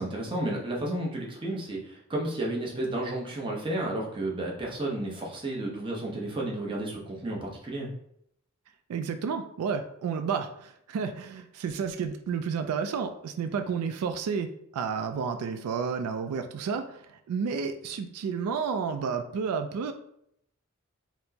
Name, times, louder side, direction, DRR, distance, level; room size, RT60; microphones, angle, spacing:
voice 1, 0.0-7.9, right 1 dB, 25° right, -3 dB, 0.7 m, -32 dB
voice 2, 8.9-19.9, right 6 dB, 85° right, 8 dB, 0.3 m, -31 dB
4.2 x 2.0 x 2.7 m, 0.72 s
head